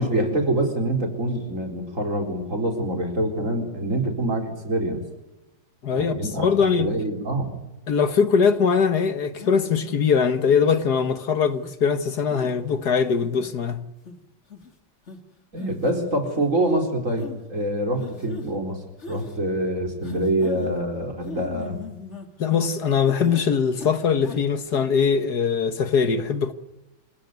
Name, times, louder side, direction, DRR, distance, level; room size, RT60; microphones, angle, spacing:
voice 1, 0.0-5.0 5.9-7.6 15.5-18.8 19.1-21.8, right 1 dB, 45° right, 4.6 m, -25 dB
voice 2, 5.8-6.9 7.9-13.8 22.4-26.5, left 6 dB, 65° left, 1.8 m, -21 dB
sound 1, 8.6-8.7 9.4-9.9 10.5-10.9 11.5-11.7 12.3-12.6 13.1-13.5 14.1-14.2 14.5-14.7 15.1-15.2 15.6-15.9 16.3-16.4 17.2-17.4 18.0-18.5 19.0-19.4 20.0-20.8 21.2-22.7 23.1-23.5 23.7-24.4 24.7-24.8, left 4 dB, 40° left, 3.0 m, -39 dB
27.5 x 17.0 x 9.5 m
omnidirectional pair, 1.9 m